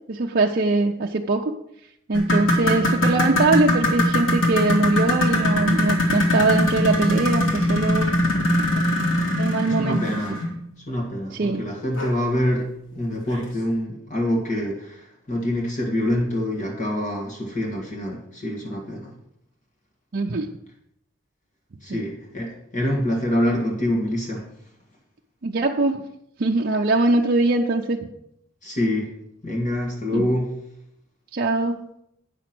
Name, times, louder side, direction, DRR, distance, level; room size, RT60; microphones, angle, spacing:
voice 1, 0.1-1.5 2.1-8.1 9.4-10.4 11.3-11.6 20.1-20.5 21.9-22.0 25.4-26.0 26.4-28.0 30.1-30.3 31.3-31.8, right 2 dB, 50° right, 0 dB, 0.6 m, -22 dB
sound 1, 2.1-10.6 12.0-12.1 12.6-12.7 13.3-13.4, left 1 dB, 75° left, 2.3 m, -22 dB
voice 2, 9.7-10.4 10.9-19.1 21.8-24.4 28.6-29.1 29.4-30.5, left 1 dB, 40° left, -1 dB, 1.8 m, -26 dB
9.1 x 6.1 x 6.0 m, 0.78 s
head